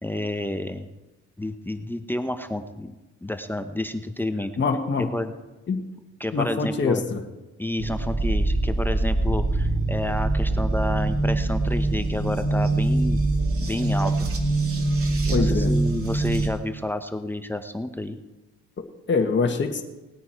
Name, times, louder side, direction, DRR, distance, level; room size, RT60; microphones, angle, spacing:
voice 1, 0.0-0.9 1.4-2.9 3.2-4.5 5.0-5.3 6.2-7.0 7.6-13.2 13.6-14.3 15.3-18.2, left 1 dB, 5° left, 9 dB, 0.8 m, -30 dB
voice 2, 4.6-5.1 5.7-5.8 6.3-7.2 15.3-15.7 18.8-19.8, left 4 dB, 40° left, 4 dB, 1.5 m, -24 dB
sound 1, 7.8-16.5, right 2 dB, 45° right, 2.4 m, -23 dB
19.0 x 9.4 x 4.5 m, 1.1 s
cardioid pair, 90°, 30 cm